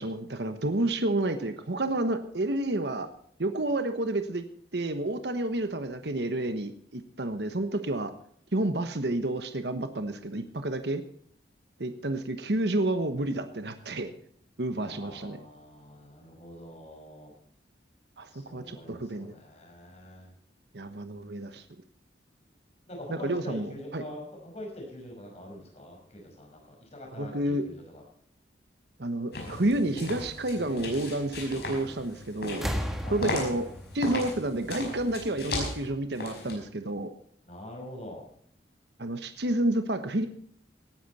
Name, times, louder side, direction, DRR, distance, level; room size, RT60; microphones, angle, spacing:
voice 1, 0.0-3.1 3.4-4.4 4.7-8.1 8.5-11.0 11.8-14.1 14.6-15.4 18.2-19.3 20.7-21.6 23.1-24.0 27.2-27.6 29.0-32.7 33.1-33.7 33.9-37.1 39.0-40.3, right 1 dB, 65° right, 9 dB, 1.2 m, -30 dB
voice 2, 14.8-17.4 18.3-20.3 22.9-28.0 33.0-33.7 37.4-38.3, left 1 dB, 35° left, 0 dB, 5.8 m, -44 dB
sound 1, 29.3-36.5, left 2 dB, 60° left, 5.4 m, -37 dB
sound 2, 31.9-32.2 32.5-35.3 36.4-36.5, equal, ahead, 1.6 m, -36 dB
18.5 x 10.5 x 4.3 m, 0.62 s
head